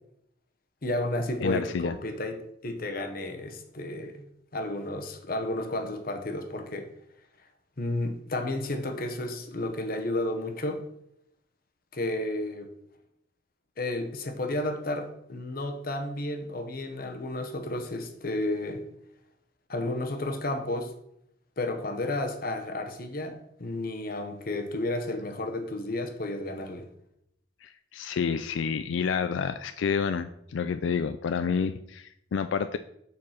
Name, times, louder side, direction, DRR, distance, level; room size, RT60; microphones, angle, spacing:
voice 1, 0.8-4.3 4.5-6.9 7.8-10.8 11.9-12.7 13.8-18.8 19.7-20.9 21.6-26.9, left 1 dB, 50° left, 6 dB, 1.1 m, -32 dB
voice 2, 1.4-2.0 27.6-32.8, left 6 dB, 85° left, 10 dB, 0.4 m, -29 dB
7.2 x 4.7 x 5.7 m, 0.76 s
head